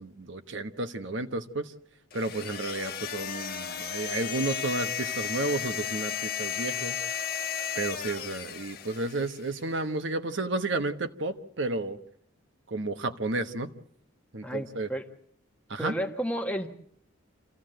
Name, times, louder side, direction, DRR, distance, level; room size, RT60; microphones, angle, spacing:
voice 1, 0.0-1.7 2.1-7.1 7.7-12.0 12.7-13.7 14.3-14.9 15.7-15.9, right 2 dB, 65° right, 8 dB, 1.2 m, -32 dB
sound 1, 2.1-9.5, left 8 dB, 45° left, 1.2 m, -34 dB
voice 2, 14.4-15.0 15.8-16.7, equal, 5° left, 6 dB, 1.3 m, -31 dB
26.5 x 15.5 x 7.8 m, 0.65 s
head